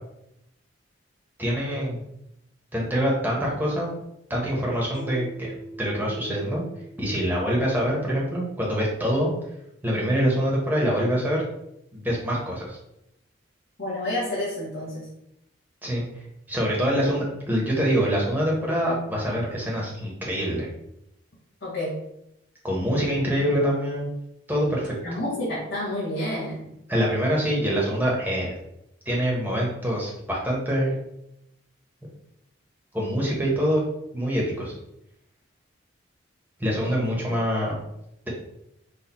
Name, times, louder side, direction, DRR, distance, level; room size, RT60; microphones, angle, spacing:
voice 1, 1.4-2.0 2.7-3.9 4.3-5.5 5.8-6.6 7.0-9.3 9.8-11.4 11.9-12.8 15.8-20.7 22.6-24.1 24.5-24.9 26.9-28.5 29.0-31.0 32.9-33.8 34.1-34.7 36.6-37.7, equal, 10° right, -3 dB, 1.1 m, -25 dB
Mallet percussion, 4.9-8.2, right 2 dB, 35° right, 1.0 m, -43 dB
voice 2, 13.8-15.1 21.6-21.9 25.0-26.7 36.8-37.4, left 1 dB, 70° left, -9 dB, 1.6 m, -30 dB
4.3 x 2.5 x 4.3 m, 0.81 s
head